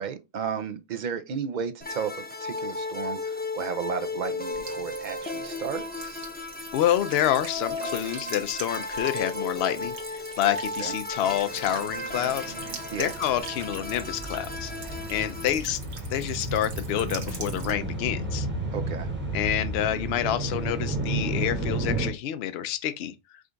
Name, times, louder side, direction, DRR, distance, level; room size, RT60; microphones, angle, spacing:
voice 1, 0.0-6.2 10.8-10.9 12.9-13.1 18.7-19.1, right 7 dB, 55° right, 0.5 m, -33 dB
sound 1, 1.8-15.5, left 2 dB, 10° left, 0.5 m, -35 dB
Buzz / Water tap faucet / Trickle dribble, 4.5-17.7, right 5 dB, 70° right, 1.3 m, -43 dB
voice 2, 6.7-15.8 16.1-18.5 19.3-23.1, left 11 dB, 70° left, 0.8 m, -28 dB
sound 2, 11.2-22.1, right 2 dB, 10° right, 0.9 m, -33 dB
5.0 x 2.4 x 3.8 m
omnidirectional pair, 1.1 m